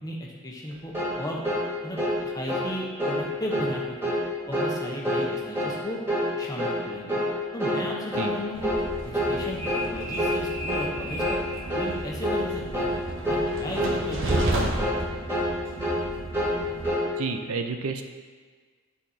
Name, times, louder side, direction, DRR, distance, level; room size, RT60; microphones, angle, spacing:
voice 1, 0.0-1.4 1.8-2.0 2.2-4.1 4.5-6.0 6.4-7.2 7.5-8.7 9.0-11.4 11.7-12.9 13.3-14.9, left 1 dB, 15° left, -2 dB, 1.1 m, -35 dB
sound 1, 0.9-1.2 1.4-1.7 2.0-2.2 2.5-2.7 3.0-3.2 3.5-3.7 4.0-4.2 4.5-4.8 5.0-5.3 5.5-5.8 6.1-6.3 6.6-6.8 7.1-7.3 7.6-7.8 8.1-8.4 8.6-8.8 9.1-9.4 9.6-9.9 10.2-10.4 10.7-10.9 11.2-11.4 11.7-11.9 12.2-12.4 12.7-13.0 13.2-13.5 13.8-14.0 14.3-14.5 14.8-15.0 15.3-15.5 15.8-16.0 16.3-17.1, equal, 10° right, 1.7 m, -26 dB
Train, 8.5-16.9, right 1 dB, 55° right, 1.0 m, -32 dB
voice 2, 17.2-18.0, right 4 dB, 80° right, 6 dB, 0.6 m, -30 dB
11.5 x 4.3 x 4.2 m, 1.5 s
head